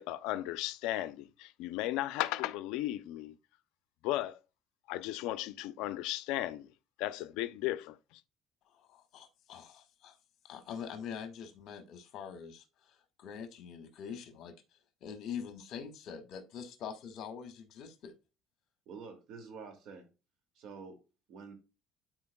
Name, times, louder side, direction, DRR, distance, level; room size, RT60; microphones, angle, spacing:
voice 1, 0.0-3.4 4.0-4.4 4.9-6.7 7.0-8.2, left 15 dB, 85° left, 0.5 m, -35 dB
voice 2, 8.7-10.2 10.4-14.6 15.0-18.1, left 7 dB, 55° left, 1.7 m, -44 dB
voice 3, 18.9-20.1 20.5-21.0 21.3-21.5, right 5 dB, 65° right, 2.3 m, -47 dB
12.0 x 4.5 x 2.3 m
cardioid pair, 135°, 0 cm